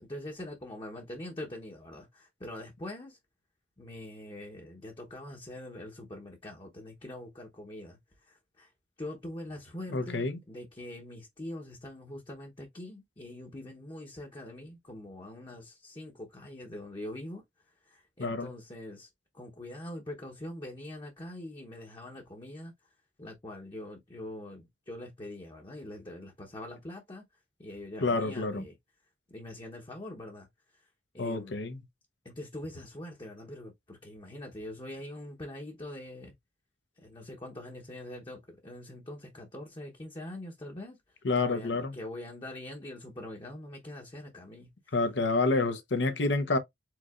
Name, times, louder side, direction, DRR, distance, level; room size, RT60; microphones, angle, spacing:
voice 1, 0.0-3.2 3.8-8.7 9.0-17.4 17.8-19.1 19.3-22.7 23.2-27.3 27.6-28.7 29.3-30.5 30.7-30.9 31.1-31.6 32.2-36.3 37.0-41.0 41.3-44.9, left 1 dB, 30° left, 0.8 m, -43 dB
voice 2, 9.9-10.4 18.2-18.5 28.0-28.6 31.2-31.8 41.2-41.9 44.9-46.6, left 3 dB, 90° left, 0.8 m, -28 dB
4.7 x 3.8 x 2.4 m
head